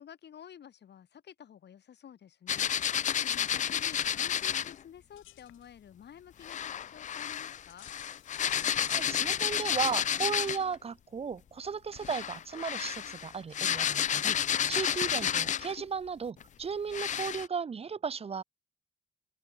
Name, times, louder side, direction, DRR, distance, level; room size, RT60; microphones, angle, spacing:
voice 1, 0.0-7.9, left 9 dB, 60° left, 3.3 m, -52 dB
sound 1, 2.5-4.8 6.4-10.8 11.9-15.8 16.4-16.5 16.9-17.5, left 9 dB, 40° left, 0.4 m, -31 dB
sound 2, 5.1-12.0, left 16 dB, 90° left, 1.7 m, -58 dB
voice 2, 8.9-18.4, right 6 dB, 30° right, 0.7 m, -35 dB
open air
cardioid pair, 90°, 20 cm